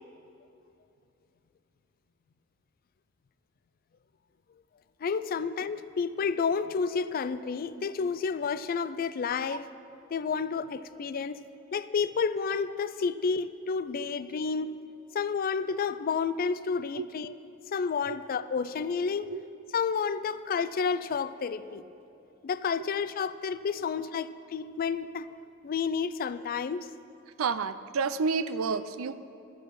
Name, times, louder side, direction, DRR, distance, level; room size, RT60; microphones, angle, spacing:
voice 1, 5.0-9.7 10.1-11.4 11.7-14.7 15.1-17.3 17.7-19.3 19.7-21.8 22.4-25.3 25.6-26.9, left 5 dB, 45° left, 14 dB, 0.4 m, -30 dB
voice 2, 27.4-29.2, right 5 dB, 85° right, 13 dB, 0.5 m, -30 dB
12.0 x 9.2 x 5.8 m, 2.7 s
head